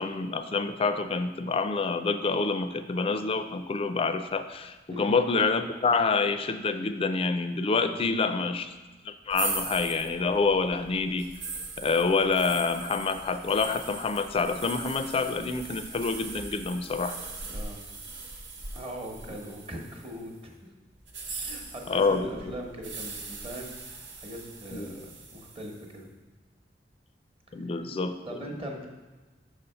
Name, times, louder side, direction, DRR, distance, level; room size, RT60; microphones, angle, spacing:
voice 1, 0.0-8.7 9.0-11.3 11.8-17.2 21.9-22.5 24.7-25.1 27.5-28.2, left 4 dB, 30° left, 9 dB, 0.4 m, -27 dB
voice 2, 4.9-5.2 7.9-8.3 17.5-17.8 18.7-20.5 21.3-26.1 27.6-27.7 28.2-28.9, equal, 30° right, 1 dB, 1.0 m, -41 dB
sound 1, 9.3-20.3 21.0-25.9, right 3 dB, 90° right, 1.0 m, -40 dB
6.0 x 4.1 x 5.5 m, 1.3 s
head